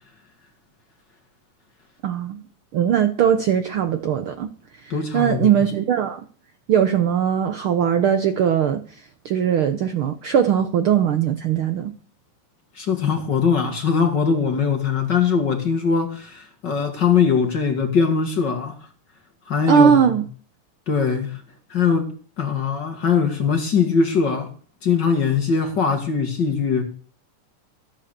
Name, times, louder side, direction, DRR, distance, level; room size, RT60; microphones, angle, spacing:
voice 1, 2.0-2.4 2.7-4.5 4.8-6.2 6.7-8.8 9.2-11.9 19.7-20.2, right 8 dB, 65° right, 1.3 m, -20 dB
voice 2, 4.9-5.6 12.8-18.8 19.5-20.2 20.9-21.4 21.7-22.1 22.4-24.5 24.8-26.8, left 6 dB, 40° left, 2.0 m, -21 dB
14.0 x 8.7 x 6.7 m
omnidirectional pair, 3.4 m